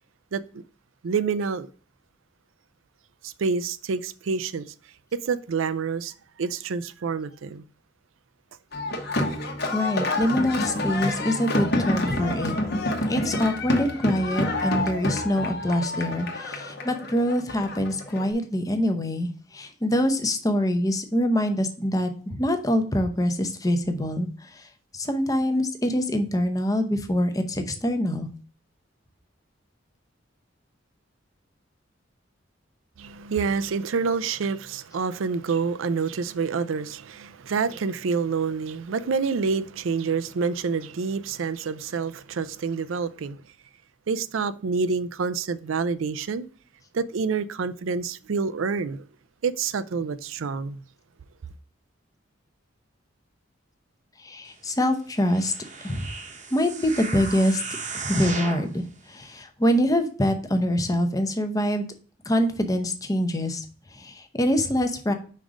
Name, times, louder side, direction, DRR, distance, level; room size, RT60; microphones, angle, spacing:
voice 1, 0.3-0.6 1.0-1.7 3.2-4.7 5.2-7.6 33.0-43.4 44.1-46.5 46.9-49.1 49.4-50.8, right 5 dB, 85° right, 0.4 m, -27 dB
sound 1, 8.7-18.2, left 1 dB, 55° left, 1.1 m, -28 dB
voice 2, 9.7-12.5 13.1-24.7 24.9-28.3 54.2-55.5 55.8-56.1 56.5-57.6 57.9-61.9 62.2-63.6 63.9-65.1, equal, 20° left, 0.7 m, -25 dB
sound 2, 55.2-58.7 59.3-59.4, right 4 dB, 40° right, 0.9 m, -35 dB
5.4 x 3.7 x 4.9 m
head